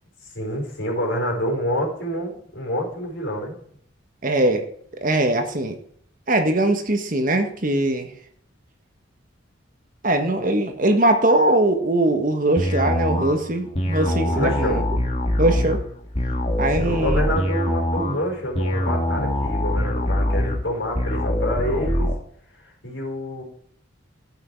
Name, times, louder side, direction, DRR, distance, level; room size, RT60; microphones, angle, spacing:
voice 1, 0.3-3.5 14.2-14.8 16.8-22.1 22.6-23.4, equal, 65° left, -1 dB, 4.7 m, -27 dB
voice 2, 4.2-4.6 4.9-5.8 6.3-8.1 10.0-14.8 15.4-15.8 16.6-17.2, right 1 dB, 45° right, 6 dB, 1.4 m, -21 dB
sound 1, 12.6-22.2, left 1 dB, 30° left, 1.7 m, -24 dB
12.5 x 7.9 x 4.6 m, 0.63 s
head